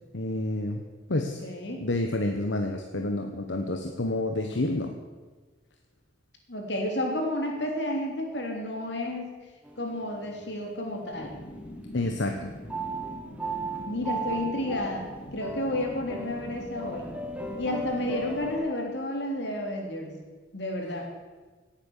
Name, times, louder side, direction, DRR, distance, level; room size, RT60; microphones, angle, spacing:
voice 1, 0.1-0.8 1.1-1.4 1.8-4.9 11.9-12.5, left 2 dB, 85° left, 4 dB, 1.2 m, -29 dB
voice 2, 1.1-1.8 6.5-9.3 9.8-11.4 13.8-17.1 17.6-20.2 20.5-21.1, left 1 dB, 70° left, 1 dB, 3.3 m, -31 dB
sound 1, 9.6-10.4 11.1-11.7 12.7-18.6, right 2 dB, 5° right, 1.6 m, -36 dB
sound 2, 11.1-18.6, left 1 dB, 35° left, 2.8 m, -43 dB
17.5 x 8.8 x 7.3 m, 1.3 s
head